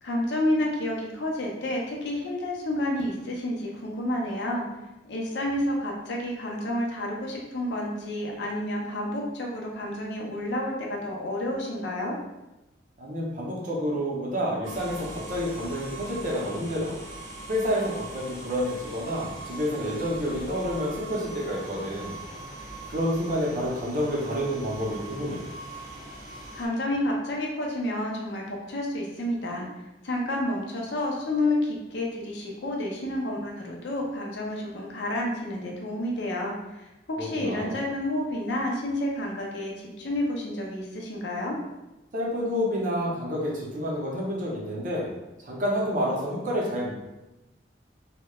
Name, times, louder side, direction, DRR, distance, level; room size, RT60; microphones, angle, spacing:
voice 1, 0.0-4.6 5.0-12.2 26.5-29.7 30.0-41.6, left 1 dB, 60° left, -1 dB, 0.5 m, -30 dB
voice 2, 13.0-16.9 17.5-22.2 22.9-25.4 37.2-37.8 42.1-45.1 45.4-46.9, equal, 40° right, -3 dB, 0.5 m, -29 dB
sound 1, 14.6-26.7, right 2 dB, 80° right, 0.7 m, -41 dB
2.9 x 2.1 x 2.2 m, 0.99 s
head